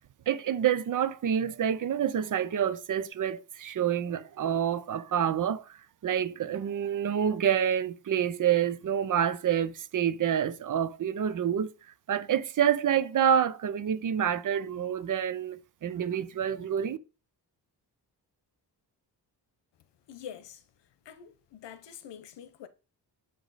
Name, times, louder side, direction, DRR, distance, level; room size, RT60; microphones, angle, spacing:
voice 1, 0.3-11.7 12.1-17.0, right 9 dB, 50° right, 0.6 m, -28 dB
voice 2, 20.1-20.6 21.0-22.7, left 9 dB, 80° left, 0.9 m, -45 dB
7.5 x 5.0 x 4.1 m
wide cardioid pair, 165°, 41 cm